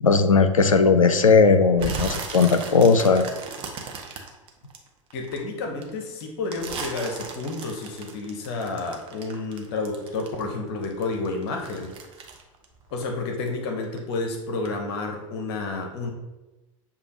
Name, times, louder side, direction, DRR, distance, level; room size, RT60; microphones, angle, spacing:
voice 1, 0.0-3.3, left 4 dB, 80° left, 9 dB, 0.4 m, -17 dB
sound 1, 1.8-5.4 5.8-10.6 10.8-13.5 13.8-14.2 14.6-14.7, right 4 dB, 30° right, 0.7 m, -36 dB
voice 2, 5.1-11.9 12.9-16.1, left 3 dB, 50° left, 3 dB, 0.7 m, -30 dB
6.9 x 2.3 x 2.8 m, 1.1 s
figure-of-eight pair, 85°, 17 cm